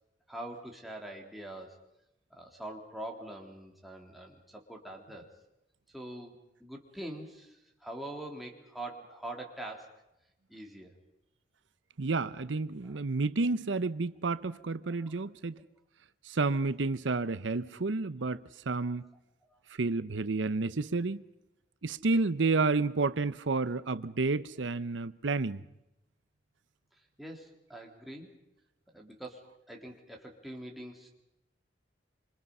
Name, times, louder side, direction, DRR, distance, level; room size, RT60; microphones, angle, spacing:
voice 1, 0.3-1.8 2.3-5.3 5.9-9.9 10.5-10.9 12.8-13.0 14.8-15.1 15.5-15.6 18.3-18.4 19.5-19.6 27.2-28.4 28.9-31.1, right 1 dB, ahead, 3.6 m, -44 dB
voice 2, 12.0-15.6 16.3-18.4 18.7-19.1 19.8-21.2 21.8-25.6, right 3 dB, 85° right, 0.8 m, -30 dB
27.0 x 26.0 x 5.5 m
head